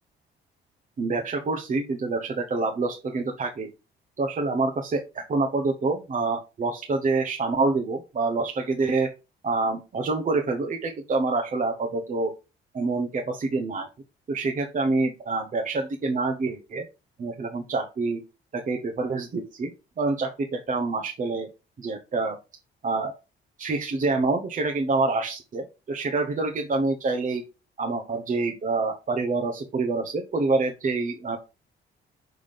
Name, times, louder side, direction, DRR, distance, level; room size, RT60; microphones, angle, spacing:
voice 1, 1.0-3.7 4.2-9.1 9.4-12.3 12.7-13.9 14.3-16.8 17.2-18.2 18.5-19.7 20.0-21.5 21.8-22.4 22.8-23.1 23.6-27.4 27.8-31.4, right 3 dB, 40° right, 3 dB, 0.9 m, -26 dB
5.8 x 3.5 x 5.0 m, 0.29 s
cardioid pair, 90°, 20 cm